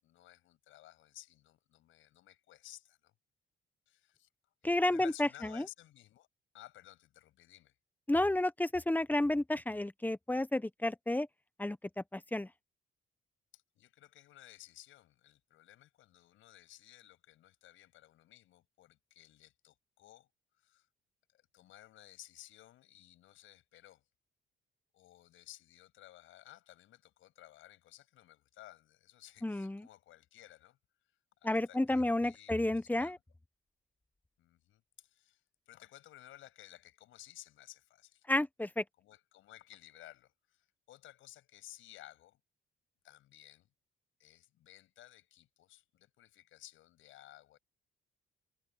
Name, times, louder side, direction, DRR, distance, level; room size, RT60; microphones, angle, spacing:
voice 1, 0.0-3.1 3.9-4.3 4.6-6.3 6.5-7.8 13.5-20.3 20.6-20.9 21.3-24.0 24.9-30.8 31.4-33.2 34.4-38.3 39.0-42.4 43.0-43.7 44.2-47.6, left 14 dB, 85° left, 7.7 m, -57 dB
voice 2, 4.6-5.3 5.5-5.7 8.1-11.3 11.6-11.8 12.1-12.5 29.4-29.9 31.4-33.2 38.3-38.8, left 1 dB, 10° left, 1.0 m, -31 dB
cardioid pair, 90°, 20 cm